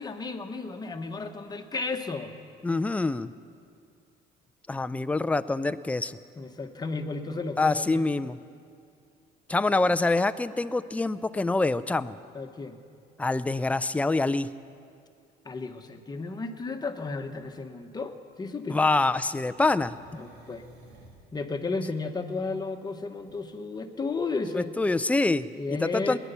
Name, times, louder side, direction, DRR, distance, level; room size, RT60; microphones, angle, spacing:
voice 1, 0.0-2.3 6.4-8.0 12.3-12.8 15.4-18.9 20.2-20.7 21.3-24.7 25.6-26.2, left 3 dB, 25° left, 6 dB, 1.2 m, -33 dB
voice 2, 2.6-3.3 4.7-6.2 7.6-8.4 9.5-12.2 13.2-14.5 18.7-20.0 24.5-26.2, left 3 dB, 10° left, 13 dB, 0.4 m, -25 dB
sound 1, 17.3-17.5 19.5-21.3 23.2-23.4, right 2 dB, 85° right, 2.4 m, -53 dB
19.5 x 10.0 x 6.8 m, 2.4 s
cardioid pair, 110°, 17 cm